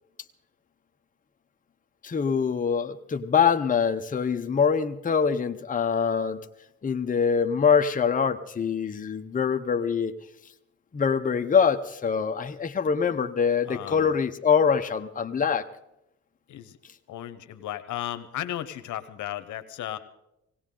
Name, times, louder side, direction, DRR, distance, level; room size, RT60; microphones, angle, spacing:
voice 1, 2.0-6.4 6.8-10.1 10.9-15.6, left 6 dB, 25° left, 6 dB, 0.9 m, -24 dB
voice 2, 13.7-14.2 16.5-16.8 17.1-20.0, left 12 dB, 75° left, 10 dB, 1.0 m, -35 dB
19.0 x 17.5 x 3.8 m, 0.86 s
cardioid pair, 90°, 30 cm